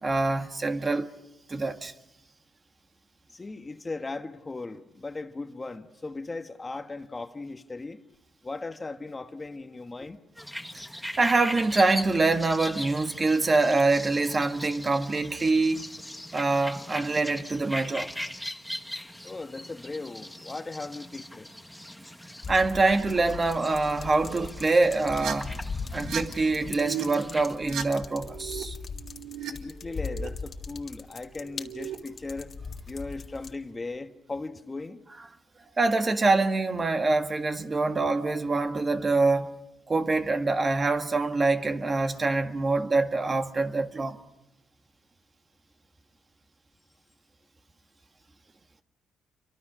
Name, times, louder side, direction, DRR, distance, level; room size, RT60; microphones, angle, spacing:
voice 1, 0.0-1.1 1.5-1.9 11.2-15.9 16.3-18.1 22.5-25.5 25.9-28.8 35.8-39.5 39.9-44.2, right 3 dB, 30° right, 1.7 m, -25 dB
voice 2, 3.3-8.0 8.4-10.2 19.2-21.5 29.4-32.5 32.9-35.0, left 3 dB, 25° left, 1.4 m, -38 dB
sound 1, 10.4-27.5, left 1 dB, 5° left, 1.5 m, -40 dB
sound 2, 22.4-33.5, left 4 dB, 45° left, 2.0 m, -40 dB
sound 3, 24.0-24.5 25.1-25.3 25.9-26.2 26.5-27.0 27.5-28.6 28.9-29.5 29.8-30.3 31.3-32.0, right 10 dB, 75° right, 2.0 m, -37 dB
29.0 x 24.0 x 6.2 m
cardioid pair, 90°, 0 cm